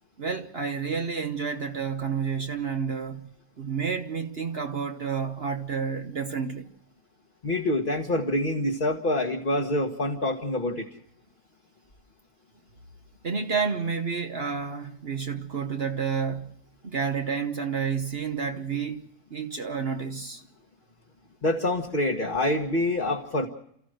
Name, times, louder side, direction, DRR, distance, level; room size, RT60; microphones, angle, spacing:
voice 1, 0.2-3.3 3.6-6.7 13.2-16.6 16.8-19.0 19.3-20.4, right 6 dB, 45° right, 1.2 m, -30 dB
voice 2, 7.4-10.9 21.4-23.5, left 1 dB, 35° left, 1.6 m, -26 dB
29.5 x 14.5 x 6.5 m
omnidirectional pair, 1.5 m